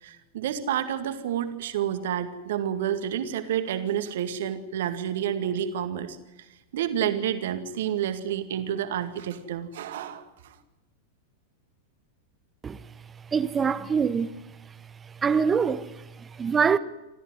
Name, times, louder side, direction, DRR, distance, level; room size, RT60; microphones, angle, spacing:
voice 1, 0.0-6.2 6.7-10.6, right 9 dB, 55° right, 2.1 m, -29 dB
voice 2, 13.3-14.3 15.2-16.8, right 6 dB, 20° right, 1.0 m, -24 dB
28.0 x 14.0 x 9.7 m
figure-of-eight pair, 90°, 0 cm